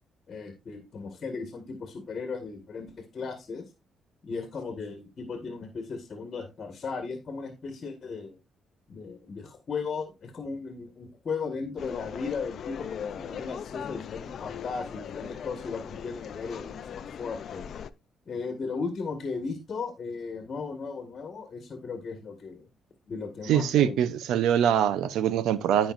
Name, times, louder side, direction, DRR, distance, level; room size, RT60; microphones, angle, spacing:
voice 1, 0.3-3.7 4.2-8.4 8.9-17.7 18.3-22.7 23.1-24.0, left 4 dB, 45° left, 1.8 m, -36 dB
sound 1, 11.8-17.9, left 8 dB, 60° left, 0.6 m, -39 dB
voice 2, 23.5-25.9, right 9 dB, 85° right, 0.8 m, -23 dB
15.5 x 5.5 x 2.6 m
cardioid pair, 90°, 0 cm